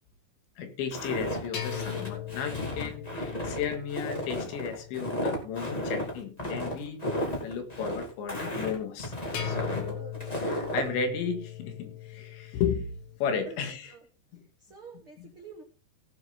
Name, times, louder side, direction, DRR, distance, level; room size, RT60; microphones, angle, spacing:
voice 1, 0.6-9.1 9.4-10.0 10.5-12.9 13.2-13.9 14.3-14.4, left 6 dB, 80° left, 7 dB, 3.9 m, -34 dB
Walk footsteps, 0.9-10.9, equal, 25° left, 0.9 m, -33 dB
sound 1, 1.5-5.8 9.3-13.2, left 11 dB, 60° left, 2.0 m, -40 dB
voice 2, 10.0-10.4 13.5-14.0 14.3-15.6, right 5 dB, 80° right, 2 dB, 1.2 m, -49 dB
17.5 x 6.9 x 3.9 m, 0.35 s
omnidirectional pair, 5.3 m